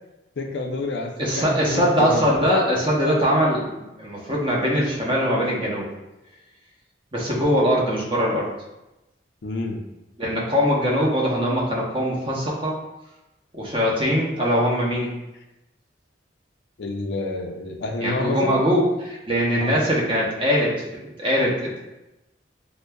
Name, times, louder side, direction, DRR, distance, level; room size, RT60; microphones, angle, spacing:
voice 1, 0.4-2.3 9.4-9.8 16.8-18.5 19.5-19.8, left 2 dB, 70° left, 3 dB, 0.5 m, -28 dB
voice 2, 1.2-5.9 7.1-8.5 10.2-12.7 13.5-15.1 18.0-21.9, equal, 30° right, -4 dB, 0.8 m, -22 dB
6.2 x 2.1 x 2.2 m, 0.97 s
head